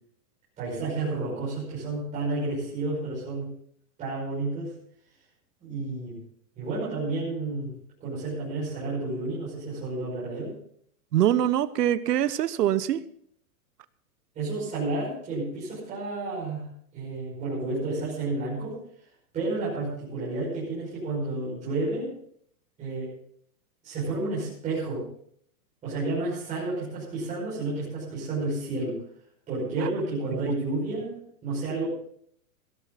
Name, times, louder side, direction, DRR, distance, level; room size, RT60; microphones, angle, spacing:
voice 1, 0.6-3.5 4.0-4.7 5.6-6.2 6.6-7.7 8.0-10.5 14.3-16.6 16.9-18.8 19.3-22.1 22.8-23.1 23.8-25.0 25.8-29.0 29.5-31.9, right 2 dB, 15° right, -9 dB, 5.9 m, -31 dB
voice 2, 11.1-13.0 29.8-29.9 30.3-30.4, right 11 dB, 85° right, 16 dB, 1.1 m, -24 dB
16.5 x 13.5 x 4.1 m, 0.66 s
supercardioid pair, 175°, 46 cm